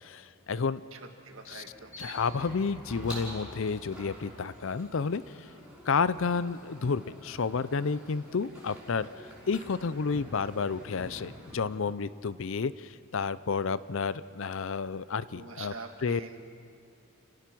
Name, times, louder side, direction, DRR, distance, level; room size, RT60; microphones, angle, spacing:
voice 1, 0.0-0.8 1.5-1.6 2.0-5.5 5.9-9.1 9.5-15.7 16.0-16.2, left 5 dB, 60° left, 16 dB, 0.5 m, -31 dB
voice 2, 0.9-1.9 15.3-16.5, right 4 dB, 60° right, 5 dB, 1.8 m, -45 dB
sound 1, 1.3-11.6, equal, 5° right, 5.8 m, -47 dB
30.0 x 17.5 x 6.1 m, 2.3 s
head